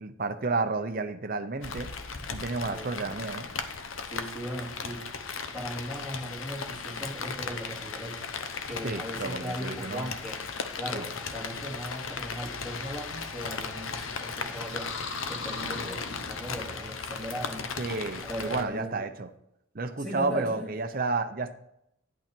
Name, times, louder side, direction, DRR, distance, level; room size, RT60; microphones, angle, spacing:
voice 1, 0.0-1.9 2.3-3.5 8.8-10.1 10.9-11.0 17.8-19.3 19.7-21.5, right 3 dB, 45° right, 8 dB, 0.7 m, -31 dB
Rain, 1.6-18.6, left 5 dB, 80° left, 0.9 m, -37 dB
voice 2, 2.1-3.2 4.0-5.1 5.5-8.2 8.7-10.4 10.7-15.0 15.3-17.8 18.2-19.0 20.0-20.7, equal, 5° left, -5 dB, 2.7 m, -38 dB
sound 1, 14.6-16.9, left 4 dB, 65° left, 1.1 m, -39 dB
10.5 x 8.7 x 4.5 m, 0.78 s
head